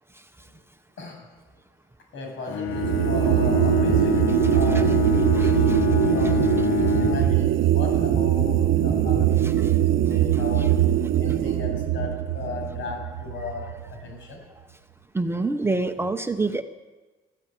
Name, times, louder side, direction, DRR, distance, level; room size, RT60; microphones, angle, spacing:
voice 1, 2.1-5.1 5.3-6.5 6.9-10.7 11.2-13.7 14.0-14.4, left 3 dB, 65° left, 2 dB, 7.8 m, -35 dB
Bowed string instrument, 2.5-7.4, left 4 dB, 85° left, 1.4 m, -25 dB
sound 1, 2.7-14.0, right 12 dB, 75° right, 0.8 m, -22 dB
voice 2, 4.3-4.8 5.3-5.8 7.2-7.3 9.2-9.7 10.3-10.7 15.1-16.6, right 3 dB, 10° right, 6 dB, 0.7 m, -28 dB
24.5 x 14.0 x 9.1 m, 1.3 s
cardioid pair, 175°, 21 cm